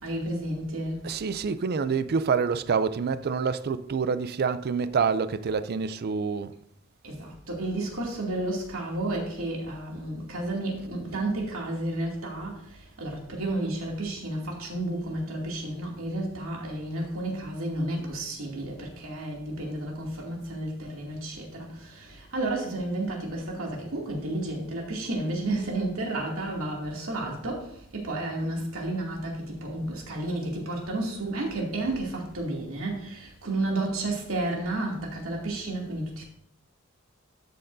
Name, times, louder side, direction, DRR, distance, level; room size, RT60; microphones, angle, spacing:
voice 1, 0.0-1.0 7.0-36.2, right 2 dB, 85° right, 2.5 m, -32 dB
voice 2, 1.0-6.5, right 5 dB, 50° right, 0.4 m, -27 dB
13.0 x 6.6 x 2.6 m
head